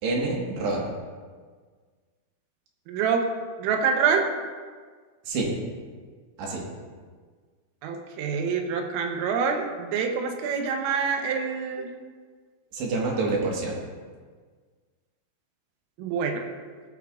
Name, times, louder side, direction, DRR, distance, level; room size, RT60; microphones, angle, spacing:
voice 1, 0.0-0.9 5.2-5.5 6.4-6.6 12.7-13.8, right 3 dB, 65° right, -2 dB, 3.3 m, -27 dB
voice 2, 2.9-3.3 3.6-4.3 7.8-11.9 16.0-16.5, right 6 dB, 85° right, 4 dB, 3.6 m, -26 dB
17.5 x 10.0 x 2.5 m, 1.5 s
omnidirectional pair, 5.8 m